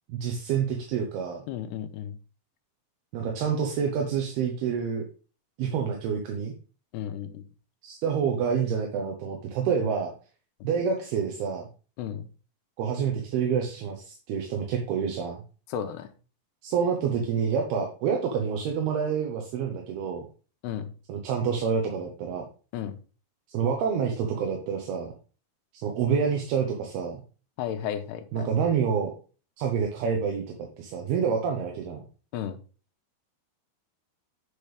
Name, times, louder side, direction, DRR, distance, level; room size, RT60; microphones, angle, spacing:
voice 1, 0.1-1.4 3.1-5.1 5.6-6.5 7.8-10.1 10.6-11.7 12.8-15.4 16.6-20.3 21.1-22.5 23.5-25.1 25.7-27.2 28.3-29.1 29.6-30.4 30.8-32.0, right 6 dB, 75° right, 2 dB, 3.0 m, -27 dB
voice 2, 1.5-2.1 6.9-7.4 12.0-12.3 15.7-16.1 20.6-20.9 22.7-23.0 27.6-28.5 32.3-32.6, left 9 dB, 90° left, 7 dB, 3.0 m, -33 dB
8.3 x 6.8 x 3.4 m, 0.36 s
omnidirectional pair, 4.7 m